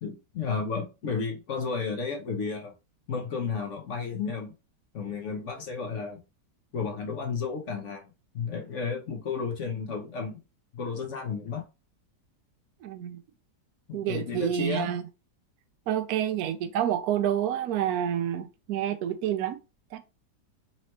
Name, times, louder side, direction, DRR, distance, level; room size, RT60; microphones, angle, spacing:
voice 1, 0.0-2.7 3.1-4.5 4.9-6.2 6.7-10.4 10.7-11.7 13.9-14.9, left 5 dB, 55° left, 1.0 m, -32 dB
voice 2, 12.8-13.2 13.9-15.0 15.9-19.6 19.9-20.0, right 10 dB, 70° right, 1.0 m, -28 dB
4.3 x 3.0 x 2.9 m
omnidirectional pair, 1.8 m